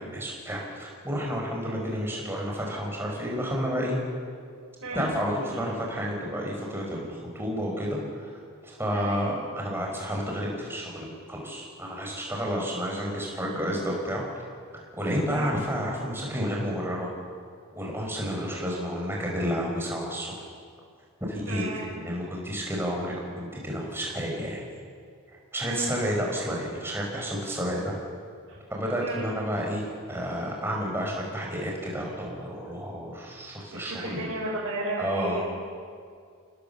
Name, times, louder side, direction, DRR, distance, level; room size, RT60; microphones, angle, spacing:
voice 1, 0.0-4.0 4.9-8.3 8.6-14.2 14.9-17.1 17.7-20.3 21.2-21.7 21.9-24.6 25.5-27.9 28.7-34.3 35.0-35.4, equal, 10° right, -2 dB, 5.0 m, -30 dB
voice 2, 8.9-9.4 15.3-15.5 21.5-21.9 25.6-25.9 28.5-28.6 29.0-29.3 33.7-35.5, right 2 dB, 85° right, -6 dB, 5.2 m, -34 dB
27.5 x 18.5 x 7.0 m, 2.2 s
head